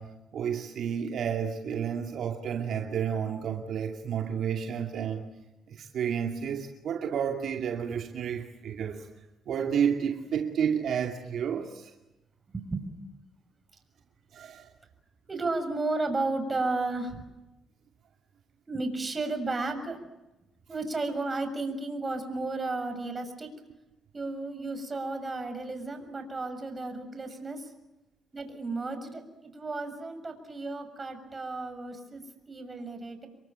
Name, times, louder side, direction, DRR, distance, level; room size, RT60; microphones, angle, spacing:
voice 1, 0.0-5.3 5.7-9.1 9.5-11.9 14.3-14.7, right 8 dB, 70° right, 3 dB, 2.5 m, -31 dB
voice 2, 12.5-12.9 15.3-17.3 18.7-20.0 20.7-23.5 24.1-27.7 28.3-33.3, right 3 dB, 25° right, 7 dB, 6.7 m, -33 dB
29.0 x 23.0 x 8.9 m, 0.98 s
cardioid pair, 90°, 0 cm